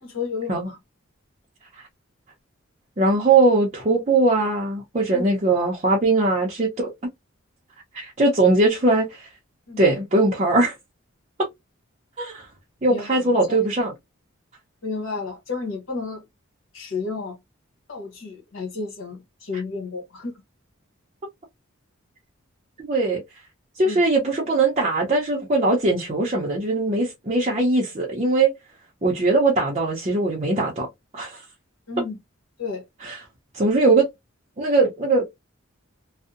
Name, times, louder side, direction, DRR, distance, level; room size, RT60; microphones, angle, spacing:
voice 1, 0.0-0.8 5.1-5.3 9.7-9.8 12.9-13.6 14.8-16.2 16.7-17.4 17.9-20.4 23.8-24.0 31.9-32.2 32.6-32.8, left 4 dB, 80° left, 0.9 m, -32 dB
voice 2, 3.0-6.9 7.9-9.3 9.8-10.7 12.2-12.5 12.8-13.9 22.8-23.2 23.8-28.5 29.0-30.9 31.1-31.4 33.0-33.2 33.5-34.1 34.6-35.2, right 2 dB, 35° right, 0.6 m, -20 dB
2.6 x 2.0 x 2.4 m
head